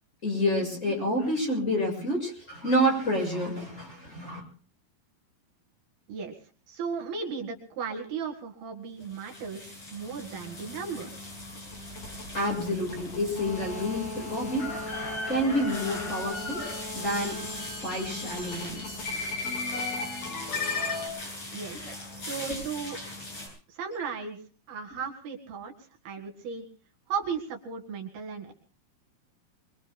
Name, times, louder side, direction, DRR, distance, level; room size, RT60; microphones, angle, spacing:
voice 1, 0.2-4.4 12.3-14.7 15.3-16.6 16.9-19.1 21.9-22.0, equal, 15° left, 1 dB, 7.0 m, -29 dB
voice 2, 6.7-11.1 21.5-21.8 22.2-23.0 23.7-24.4 24.7-25.7 26.1-26.7 27.1-28.5, right 6 dB, 70° right, 2 dB, 3.8 m, -35 dB
sound 1, 9.0-23.5, left 2 dB, 40° left, 9.0 m, -40 dB
sound 2, 11.5-21.1, left 3 dB, 70° left, 6.5 m, -36 dB
24.5 x 24.0 x 2.2 m, 0.40 s
omnidirectional pair, 4.6 m